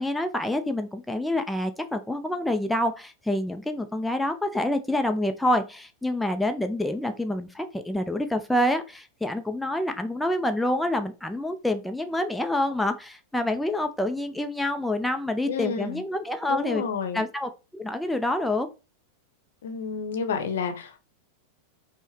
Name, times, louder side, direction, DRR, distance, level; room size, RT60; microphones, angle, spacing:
voice 1, 0.0-16.8 17.1-18.7, left 1 dB, 5° left, 0.4 m, -27 dB
voice 2, 15.5-16.0 16.5-17.2 19.6-21.0, left 6 dB, 60° left, 0.7 m, -30 dB
5.3 x 2.0 x 3.1 m
figure-of-eight pair, 90°, 0 cm